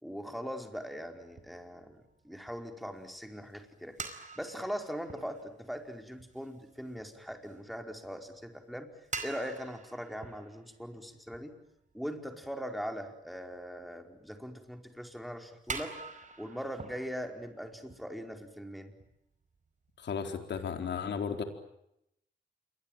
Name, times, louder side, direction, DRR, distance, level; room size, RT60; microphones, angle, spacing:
voice 1, 0.0-8.9 9.2-11.5 11.9-15.9 16.4-18.9, equal, ahead, 4 dB, 4.9 m, -41 dB
sound 1, 0.9-8.5 8.8-12.0 12.4-12.5 13.4-13.8 14.1-14.2 14.6-14.7 15.3-15.4 15.6-18.7 19.0-19.1 19.5-19.6 19.8-20.8, right 4 dB, 40° right, 4.8 m, -46 dB
voice 2, 20.0-21.4, left 6 dB, 70° left, 5 dB, 4.5 m, -34 dB
28.0 x 23.0 x 9.2 m, 0.81 s
cardioid pair, 80°, 19 cm